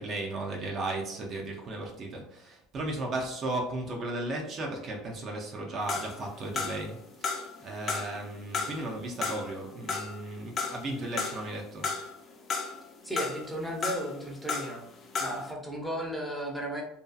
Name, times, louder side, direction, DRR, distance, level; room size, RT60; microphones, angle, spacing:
voice 1, 0.0-11.9, right 2 dB, 40° right, 0 dB, 0.5 m, -35 dB
sound 1, 5.9-7.0 7.2-8.2 8.5-11.5 11.8-12.8 13.2-14.8 15.1-15.5, left 4 dB, 40° left, 0.5 m, -34 dB
voice 2, 13.0-14.8 15.2-16.8, right 1 dB, ahead, -1 dB, 0.6 m, -35 dB
2.6 x 2.3 x 2.2 m, 0.76 s
supercardioid pair, 105°, 0 cm